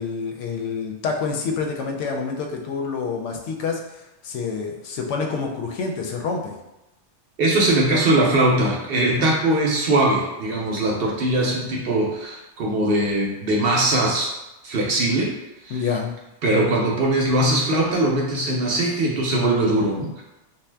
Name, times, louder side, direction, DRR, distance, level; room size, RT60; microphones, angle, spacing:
voice 1, 0.0-6.6 9.0-9.3 15.7-16.1, left 5 dB, 90° left, 2 dB, 0.9 m, -28 dB
voice 2, 7.4-14.3 14.6-15.3 15.6-15.8 16.4-20.2, right 1 dB, 60° right, -2 dB, 0.8 m, -21 dB
2.7 x 2.1 x 3.3 m, 0.98 s
omnidirectional pair, 1.2 m